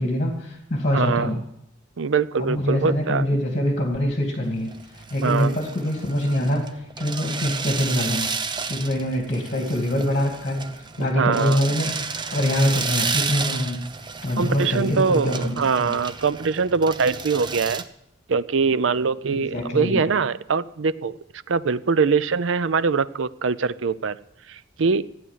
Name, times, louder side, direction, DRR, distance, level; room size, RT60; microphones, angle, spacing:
voice 1, 0.0-1.4 2.4-8.3 8.7-13.8 14.2-16.0 19.3-20.0, left 1 dB, 40° left, 2 dB, 2.5 m, -24 dB
voice 2, 0.9-1.3 2.0-3.3 5.2-5.5 11.0-11.6 14.4-17.8 18.3-21.2 21.5-24.2 24.5-25.0, right 5 dB, 70° right, 17 dB, 0.5 m, -23 dB
sound 1, 4.4-17.8, right 5 dB, 25° right, 0.7 m, -32 dB
15.0 x 9.6 x 7.4 m, 0.80 s
head